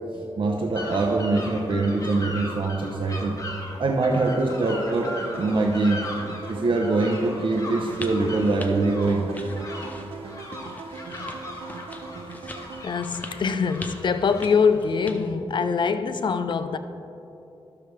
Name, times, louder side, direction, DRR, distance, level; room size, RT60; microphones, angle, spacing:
voice 1, 0.1-3.4 3.8-6.1 6.5-9.3, right 3 dB, 60° right, 1 dB, 0.8 m, -23 dB
sound 1, 0.7-14.8, left 2 dB, 35° left, 1.3 m, -39 dB
sound 2, 4.1-12.8, right 5 dB, 90° right, 0.4 m, -40 dB
sound 3, 7.8-15.3, left 1 dB, 15° left, 0.7 m, -42 dB
voice 2, 12.8-16.8, left 5 dB, 55° left, 10 dB, 0.5 m, -23 dB
12.5 x 6.7 x 3.3 m, 2.8 s
cardioid pair, 90°, 10 cm